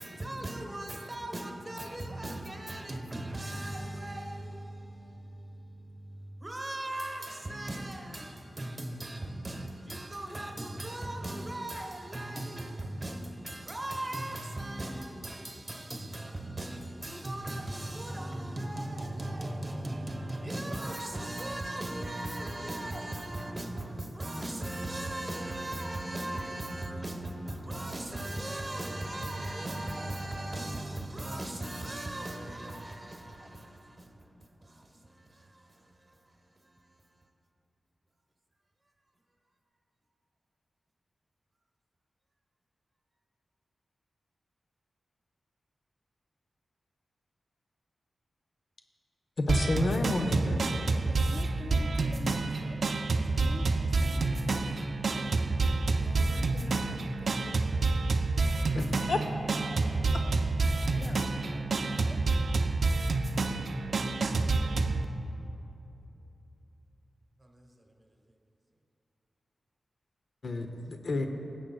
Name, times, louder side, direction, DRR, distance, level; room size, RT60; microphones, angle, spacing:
voice 1, 0.0-36.9 58.3-59.2 59.6-59.9 67.4-67.8, right 1 dB, 30° right, 1.1 m, -38 dB
voice 2, 49.4-50.6 58.7-59.2 70.4-71.3, left 2 dB, 65° left, 0.6 m, -30 dB
sound 1, 49.5-65.0, right 3 dB, 65° right, 0.4 m, -28 dB
voice 3, 50.3-52.8 53.1-54.7 55.1-55.4 55.8-57.8 60.8-61.2 61.5-62.2, left 1 dB, 30° left, 0.4 m, -47 dB
17.0 x 7.6 x 2.3 m
cardioid pair, 70°, 0 cm